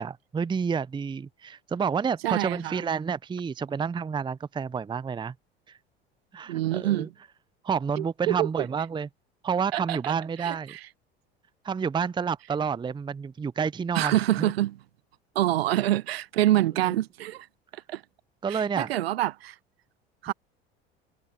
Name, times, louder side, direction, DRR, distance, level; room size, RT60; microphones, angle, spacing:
voice 1, 0.0-5.3 5.7-5.8 6.3-7.1 7.6-9.1 9.4-10.8 11.6-14.5 18.4-18.9, right 6 dB, 15° right, 0.6 m, -29 dB
voice 2, 2.2-2.8 6.5-7.1 8.0-8.7 9.7-10.1 10.4-10.8 13.9-14.8 15.3-17.5 17.7-18.0 18.5-19.6 20.2-20.3, right 14 dB, 75° right, 0.8 m, -26 dB
figure-of-eight pair, 70°, 30 cm